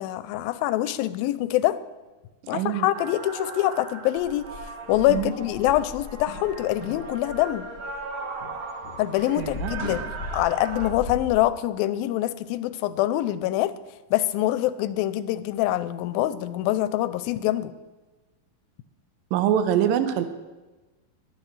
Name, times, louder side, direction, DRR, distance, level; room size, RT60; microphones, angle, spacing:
voice 1, 0.0-1.8 2.5-7.7 9.0-10.0 10.3-13.7 14.1-17.7, left 14 dB, 85° left, 14 dB, 2.3 m, -25 dB
voice 2, 2.5-2.9 5.1-5.3 9.4-9.7 19.3-20.2, right 10 dB, 80° right, 9 dB, 2.5 m, -24 dB
sound 1, 2.9-10.9, right 4 dB, 65° right, 1.3 m, -38 dB
sound 2, 4.2-8.6 8.8-11.4, left 3 dB, 30° left, 5.7 m, -38 dB
21.5 x 9.9 x 3.2 m, 1.2 s
omnidirectional pair, 4.1 m